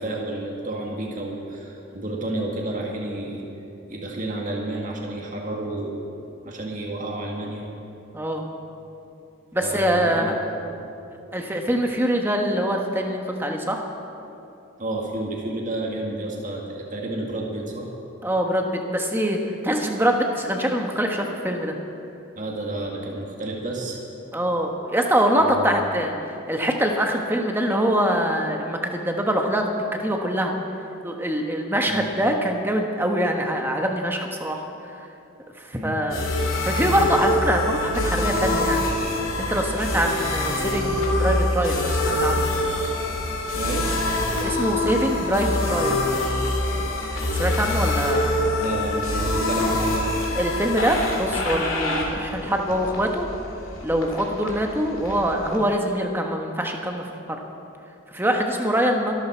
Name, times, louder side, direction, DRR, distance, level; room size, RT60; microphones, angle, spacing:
voice 1, 0.0-3.4 3.9-6.0 6.4-7.7 9.6-10.8 14.8-17.9 22.4-24.0 25.4-25.8 31.9-32.1 35.7-36.0 43.6-43.9 48.6-50.1, right 1 dB, 40° right, -1 dB, 2.0 m, -30 dB
voice 2, 8.1-8.5 9.5-10.5 11.3-13.8 18.2-21.7 24.3-30.5 31.0-34.6 35.6-36.3 36.6-39.0 39.4-42.5 44.4-46.0 47.3-48.5 50.3-53.3 53.8-57.4 58.1-59.1, equal, 10° right, 2 dB, 1.2 m, -24 dB
sound 1, 36.1-55.6, left 1 dB, 75° left, 2.9 m, -25 dB
23.0 x 13.5 x 4.5 m, 2.8 s
head